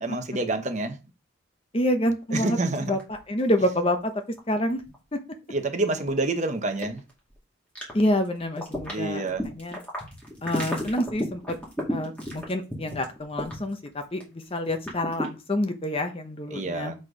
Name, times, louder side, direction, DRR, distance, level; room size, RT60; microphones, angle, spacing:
voice 1, 0.0-1.0 2.3-3.0 5.5-7.0 8.9-9.5 16.5-16.9, right 2 dB, 35° right, 0.9 m, -28 dB
voice 2, 1.7-4.1 4.5-4.8 7.9-9.2 9.5-9.8 10.4-11.4 11.9-16.9, left 1 dB, 25° left, 0.8 m, -27 dB
sound 1, 2.6-3.5 3.7-3.8 4.3-4.9 5.5-5.6 6.0-6.1 6.8-7.3 7.7-8.3 8.5-14.2 14.5-15.3, equal, 5° left, 2.2 m, -33 dB
6.4 x 4.4 x 5.0 m
head